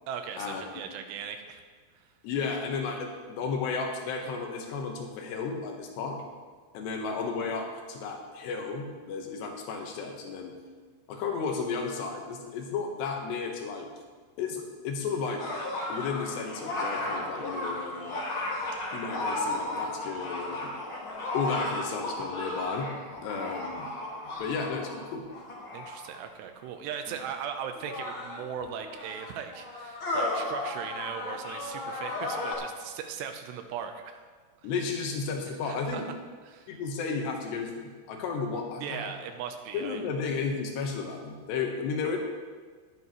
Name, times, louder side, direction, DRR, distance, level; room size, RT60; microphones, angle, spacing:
voice 1, 0.1-1.6 25.7-34.2 35.6-36.0 36.5-36.8 38.8-40.0, right 8 dB, 85° right, 6 dB, 3.1 m, -38 dB
voice 2, 2.2-6.2 6.7-10.5 11.1-13.9 14.4-15.4 15.9-18.2 18.9-20.7 21.3-22.9 23.2-23.9 24.4-25.2 34.6-36.1 36.7-39.1 39.7-42.2, left 5 dB, 80° left, 2 dB, 3.4 m, -33 dB
sound 1, 15.4-26.2 27.1-27.2 27.8-32.6, left 2 dB, 40° left, 2.2 m, -34 dB
20.5 x 8.2 x 3.1 m, 1.5 s
omnidirectional pair, 4.8 m